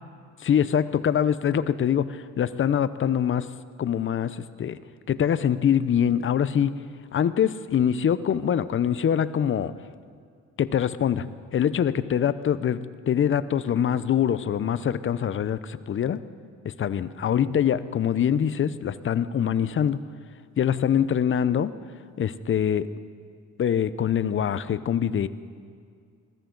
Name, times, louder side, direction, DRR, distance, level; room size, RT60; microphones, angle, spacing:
voice 1, 0.4-3.5 3.8-4.8 5.1-6.8 7.1-9.7 10.6-16.2 16.6-20.0 20.6-21.7 22.2-22.9 23.6-25.3, left 9 dB, 45° left, 15 dB, 0.6 m, -24 dB
21.0 x 14.0 x 3.9 m, 2.2 s
cardioid pair, 90°, 30 cm